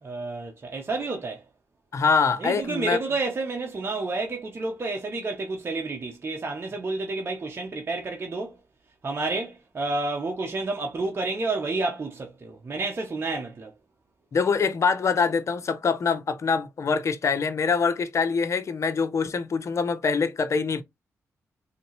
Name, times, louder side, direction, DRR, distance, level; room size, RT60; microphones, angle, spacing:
voice 1, 0.0-1.4 2.4-8.6 9.0-13.7, right 3 dB, 45° right, 0.9 m, -30 dB
voice 2, 1.9-3.0 14.3-20.8, left 5 dB, 60° left, 0.7 m, -24 dB
3.9 x 2.9 x 3.0 m
supercardioid pair, 50°, 6 cm